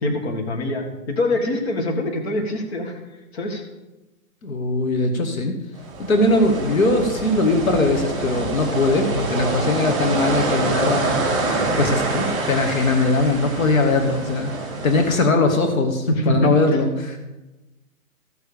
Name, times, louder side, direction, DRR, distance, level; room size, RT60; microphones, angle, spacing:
voice 1, 0.0-3.0 3.3-3.6 16.1-16.5, left 1 dB, 45° left, 2 dB, 1.8 m, -24 dB
voice 2, 4.4-5.6 6.0-11.2 11.8-14.5 14.8-17.2, left 2 dB, 70° left, 5 dB, 1.8 m, -20 dB
sound 1, 5.8-15.2, right 2 dB, 10° right, 4.6 m, -26 dB
15.0 x 7.0 x 5.1 m, 1.0 s
hypercardioid pair, 170°, 43 cm